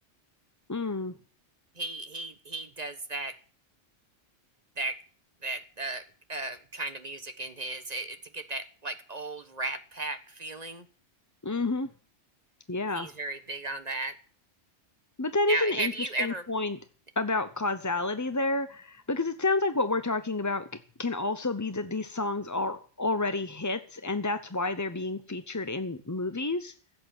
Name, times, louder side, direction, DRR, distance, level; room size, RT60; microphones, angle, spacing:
voice 1, 0.7-1.1 11.4-11.9 12.7-13.1 15.2-16.8 17.2-20.6 21.0-26.7, left 2 dB, 20° left, 10 dB, 0.6 m, -29 dB
voice 2, 1.7-3.4 4.8-5.0 5.4-10.9 12.9-14.2 15.5-16.4, right 2 dB, 35° right, 9 dB, 1.4 m, -35 dB
16.0 x 8.3 x 9.0 m, 0.41 s
omnidirectional pair, 1.2 m